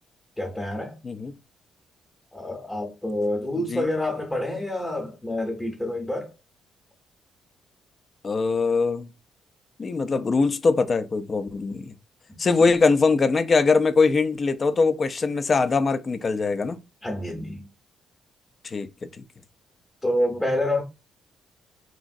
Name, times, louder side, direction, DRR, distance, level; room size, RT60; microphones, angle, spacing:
voice 1, 0.4-1.0 2.3-6.3 12.3-12.7 17.0-17.7 20.0-20.8, left 1 dB, 10° left, 0.8 m, -28 dB
voice 2, 1.0-1.4 3.6-3.9 8.2-9.1 9.8-11.9 12.4-16.8 18.6-19.1, left 4 dB, 40° left, 0.4 m, -22 dB
3.0 x 2.6 x 2.5 m
cardioid pair, 90°, 0 cm